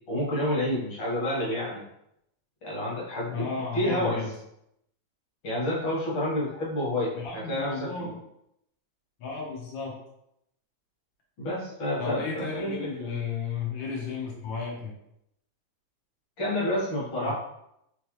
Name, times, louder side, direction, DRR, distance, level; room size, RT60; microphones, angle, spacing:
voice 1, 0.1-1.8 2.6-4.2 5.4-7.9 11.4-13.1 16.4-17.3, left 1 dB, 55° left, -5 dB, 1.8 m, -29 dB
voice 2, 3.3-4.3 7.1-8.2 9.2-10.0 12.0-14.9 17.2-17.3, left 5 dB, 85° left, -3 dB, 1.0 m, -33 dB
4.5 x 3.2 x 3.1 m, 0.79 s
omnidirectional pair, 3.5 m